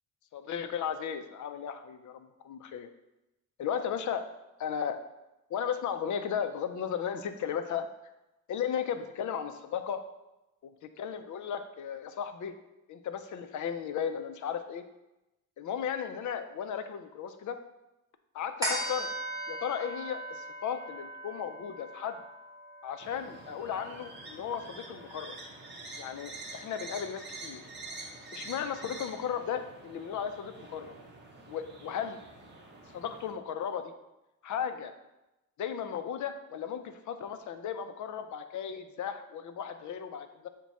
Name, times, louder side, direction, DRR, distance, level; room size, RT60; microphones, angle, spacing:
voice 1, 0.3-2.9 3.6-4.2 4.6-5.0 5.5-7.9 8.5-10.0 10.6-12.5 12.9-14.8 15.6-17.6 18.3-19.1 19.5-22.2 22.8-25.4 26.0-27.6 28.3-30.9 31.5-32.2 32.9-33.9 34.4-34.9 35.6-40.5, left 8 dB, 60° left, 9 dB, 0.5 m, -35 dB
sound 1, 18.6-25.4 25.8-25.9, right 1 dB, 10° right, 1.0 m, -39 dB
sound 2, 23.0-33.3, right 2 dB, 30° right, 0.7 m, -47 dB
6.0 x 2.2 x 4.0 m, 0.95 s
wide cardioid pair, 150°, 34 cm